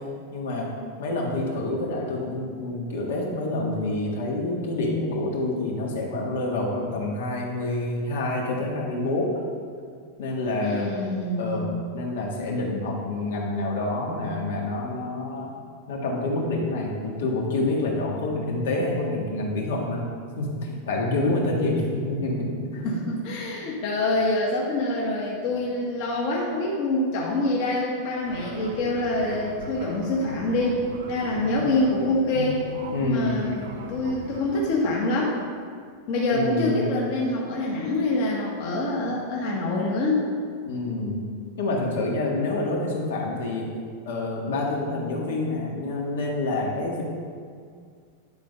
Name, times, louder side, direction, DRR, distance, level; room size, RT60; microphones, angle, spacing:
voice 1, 0.3-0.7 1.0-9.3 10.2-10.9 11.4-15.5 15.9-20.0 20.4-22.9 31.4-31.7 32.3-32.6 32.9-33.4 36.3-36.9 40.7-41.3 41.6-43.7 44.1-47.0, left 2 dB, 80° left, -1 dB, 1.7 m, -27 dB
voice 2, 10.6-11.9 22.8-32.6 33.0-35.4 36.1-40.3, left 2 dB, 40° left, -3 dB, 1.1 m, -26 dB
Fixed-wing aircraft airplane, 28.2-34.8, right 2 dB, 80° right, 1.0 m, -40 dB
10.5 x 3.8 x 5.3 m, 2.1 s
supercardioid pair, 175°, 0 cm